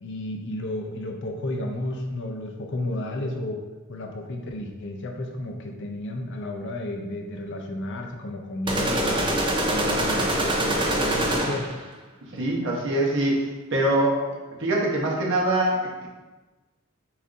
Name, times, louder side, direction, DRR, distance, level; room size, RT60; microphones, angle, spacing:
voice 1, 0.0-9.4 9.7-11.7, left 1 dB, 55° left, 3 dB, 0.5 m, -32 dB
sound 1, 8.7-11.8, right 1 dB, 20° right, 0.5 m, -24 dB
voice 2, 12.3-14.3 14.6-16.1, right 1 dB, 60° right, -2 dB, 1.0 m, -24 dB
7.0 x 2.7 x 2.5 m, 1.2 s
head